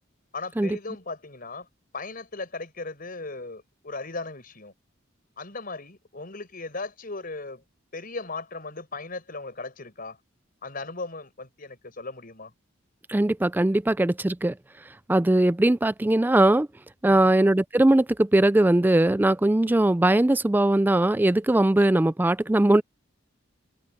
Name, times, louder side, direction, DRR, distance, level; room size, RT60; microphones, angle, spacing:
voice 1, 0.3-1.7 1.9-4.7 5.4-7.6 7.9-10.2 10.6-12.5 17.1-17.4, left 3 dB, 45° left, 5.2 m, -37 dB
voice 2, 13.1-14.5 15.1-16.7 17.0-22.8, right 1 dB, 10° right, 0.3 m, -20 dB
open air
head